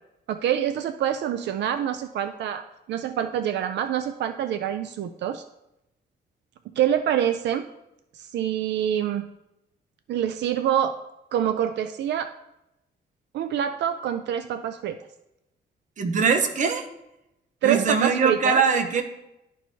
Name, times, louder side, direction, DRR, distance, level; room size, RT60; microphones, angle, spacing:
voice 1, 0.3-2.6 2.9-5.4 6.8-7.7 8.1-9.3 10.1-11.0 11.3-12.3 13.3-15.0 17.6-18.6, right 10 dB, 85° right, 9 dB, 0.4 m, -26 dB
voice 2, 16.0-16.9 17.6-19.0, right 5 dB, 45° right, 6 dB, 0.8 m, -22 dB
12.0 x 4.6 x 2.7 m, 0.89 s
wide cardioid pair, 145°, 18 cm